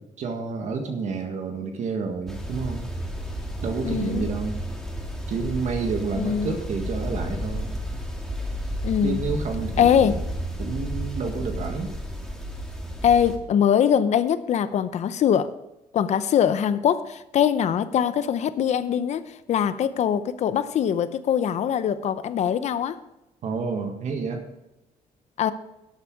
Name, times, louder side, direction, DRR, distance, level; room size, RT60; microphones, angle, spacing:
voice 1, 0.2-2.9 3.6-4.6 5.3-7.7 9.0-10.2 10.6-11.9 23.4-24.4, right 5 dB, 65° right, 3 dB, 1.7 m, -29 dB
sound 1, 2.3-13.4, equal, 5° left, 2.1 m, -32 dB
voice 2, 3.8-4.3 6.1-6.6 8.8-9.2 9.8-10.1 13.0-15.5 15.9-19.2 19.5-23.0 25.4-25.5, left 8 dB, 60° left, 13 dB, 0.7 m, -22 dB
12.5 x 8.2 x 4.7 m, 0.95 s
cardioid pair, 125°, 13 cm